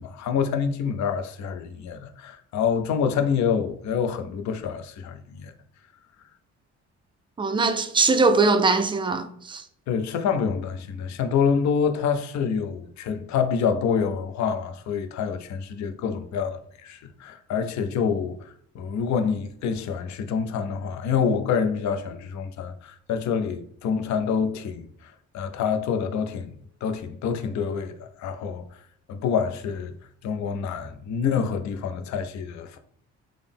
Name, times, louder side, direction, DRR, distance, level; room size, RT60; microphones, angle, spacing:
voice 1, 0.0-5.5 9.9-26.5 26.8-28.8 29.1-29.9 30.2-32.8, left 6 dB, 70° left, 0.5 m, -27 dB
voice 2, 7.4-9.6, right 3 dB, 15° right, 0.3 m, -21 dB
3.7 x 2.0 x 3.5 m
cardioid pair, 90°, 30 cm